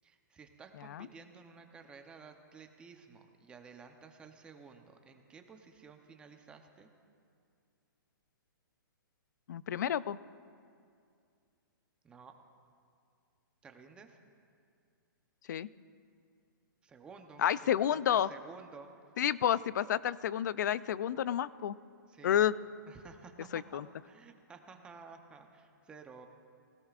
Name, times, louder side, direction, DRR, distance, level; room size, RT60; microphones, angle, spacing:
voice 1, 0.0-6.9 12.0-12.3 13.6-14.2 16.8-17.5 17.7-18.9 22.1-22.4 22.9-26.3, right 5 dB, 10° right, 5 dB, 0.7 m, -53 dB
voice 2, 9.5-10.2 15.5-15.7 17.4-18.3 19.2-21.8 22.2-22.5 23.5-23.9, left 10 dB, 55° left, 18 dB, 0.4 m, -30 dB
23.5 x 17.0 x 2.5 m, 2.4 s
hypercardioid pair, 165°, 12 cm